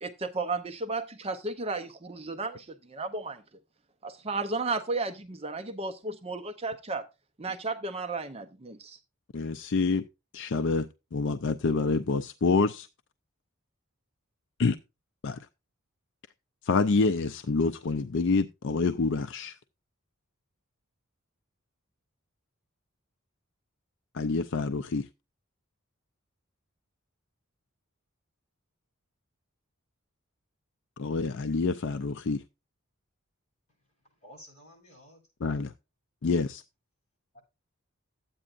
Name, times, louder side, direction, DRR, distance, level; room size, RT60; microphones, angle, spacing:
voice 1, 0.0-3.4 4.0-7.0 7.4-9.0, right 3 dB, 25° right, 0.6 m, -34 dB
voice 2, 9.3-10.0 10.3-12.9 14.6-14.8 15.2-15.5 16.6-19.6 24.1-25.1 31.0-32.4 35.4-35.7 36.2-36.6, left 4 dB, 55° left, 0.5 m, -27 dB
voice 3, 34.2-35.3 37.3-37.4, equal, 30° left, 7.1 m, -52 dB
13.0 x 8.8 x 2.5 m
head